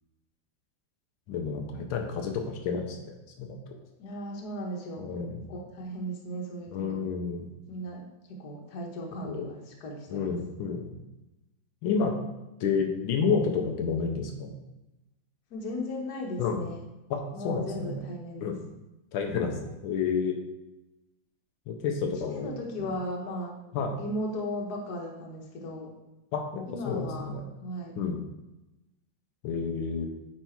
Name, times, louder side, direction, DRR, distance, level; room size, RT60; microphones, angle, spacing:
voice 1, 1.3-3.6 5.0-5.4 6.7-7.5 9.2-9.5 10.1-10.9 11.8-12.1 12.6-14.5 16.4-16.6 17.1-18.0 18.4-18.5 19.1-20.4 21.7-22.5 22.8-22.9 23.7-24.0 26.3-27.4 28.0-28.2 29.4-30.1, left 5 dB, 90° left, 2 dB, 1.6 m, -30 dB
voice 2, 4.0-5.1 5.5-7.1 7.7-10.3 15.5-16.8 17.3-18.5 22.2-23.5 24.0-25.9 26.7-27.3 27.6-28.0, equal, 55° left, 0 dB, 1.6 m, -36 dB
9.0 x 3.3 x 4.5 m, 0.98 s
omnidirectional pair, 2.2 m